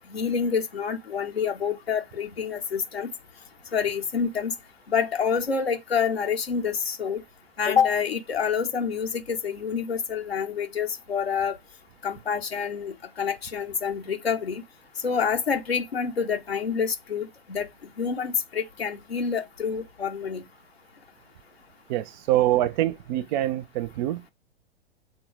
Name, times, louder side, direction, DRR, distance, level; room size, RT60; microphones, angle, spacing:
voice 1, 0.1-3.1 3.7-4.5 4.9-7.2 7.6-11.5 12.0-14.6 15.0-17.7 18.0-20.4, left 6 dB, 80° left, 1.1 m, -27 dB
voice 2, 21.9-24.2, right 14 dB, 45° right, 0.8 m, -25 dB
7.0 x 3.9 x 4.6 m
figure-of-eight pair, 100°, 30 cm